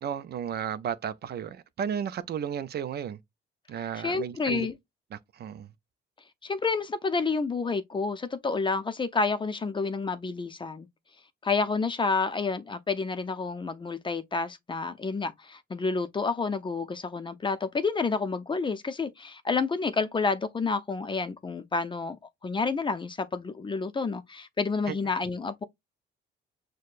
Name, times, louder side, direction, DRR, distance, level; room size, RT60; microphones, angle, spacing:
voice 1, 0.0-3.2 3.7-4.7 5.1-5.7 24.9-25.0, right 8 dB, 55° right, 0.5 m, -33 dB
voice 2, 4.0-4.7 6.4-10.9 11.4-22.2 22.4-25.6, left 4 dB, 25° left, 0.5 m, -29 dB
6.3 x 2.2 x 2.5 m
cardioid pair, 90°, 20 cm